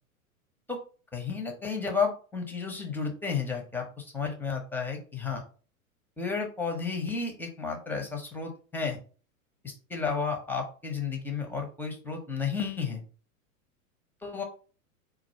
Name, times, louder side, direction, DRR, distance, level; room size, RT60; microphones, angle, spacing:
voice 1, 1.1-5.4 6.2-9.0 9.6-13.0 14.2-14.4, left 5 dB, 5° left, 2 dB, 0.7 m, -32 dB
4.5 x 2.4 x 4.3 m, 0.38 s
figure-of-eight pair, 95°, 43 cm